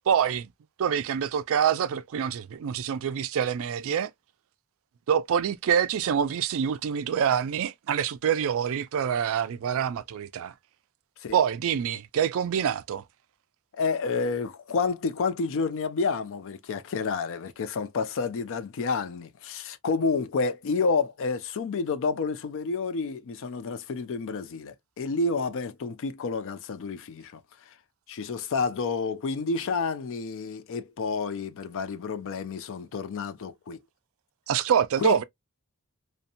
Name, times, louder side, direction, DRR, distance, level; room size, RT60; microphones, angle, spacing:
voice 1, 0.1-0.5 0.8-4.1 5.1-10.5 11.3-13.0 34.5-35.2, right 8 dB, 65° right, 0.3 m, -26 dB
voice 2, 13.8-27.4 28.1-33.8 35.0-35.2, left 4 dB, 60° left, 0.4 m, -29 dB
2.7 x 2.1 x 2.5 m
head